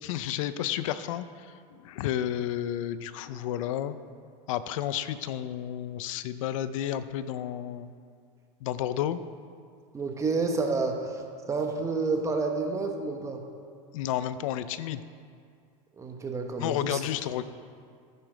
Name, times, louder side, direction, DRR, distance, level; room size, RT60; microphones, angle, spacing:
voice 1, 0.0-4.0 4.5-7.9 8.6-9.2 13.9-15.0 16.6-17.4, left 11 dB, 80° left, 13 dB, 0.5 m, -31 dB
voice 2, 9.9-11.2 11.5-13.4 16.0-17.0, right 3 dB, 20° right, 3 dB, 1.1 m, -29 dB
9.6 x 7.7 x 5.0 m, 2.2 s
supercardioid pair, 135°, 17 cm